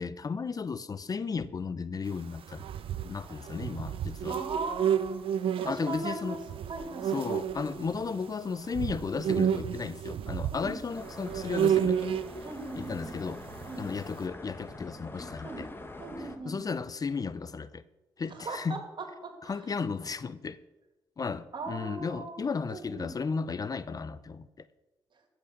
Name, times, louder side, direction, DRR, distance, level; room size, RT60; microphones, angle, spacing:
voice 1, 0.0-2.7 3.0-4.4 5.6-6.4 7.1-12.1 12.8-13.4 13.8-15.7 16.5-17.8 18.2-18.8 19.4-20.6 21.2-24.7, left 5 dB, 40° left, 0.6 m, -34 dB
sound 1, 2.5-8.2 8.7-14.0, right 9 dB, 75° right, 0.6 m, -31 dB
voice 2, 4.3-5.2 5.6-6.4 6.7-7.3 10.5-10.8 12.4-13.1 13.7-13.9 15.4-15.7 16.0-16.7 18.3-19.5 21.5-22.4 22.7-23.1, right 3 dB, 55° right, 2.4 m, -38 dB
sound 2, 10.9-16.4, left 2 dB, 25° left, 1.4 m, -45 dB
14.0 x 5.9 x 6.6 m
cardioid pair, 65°, 9 cm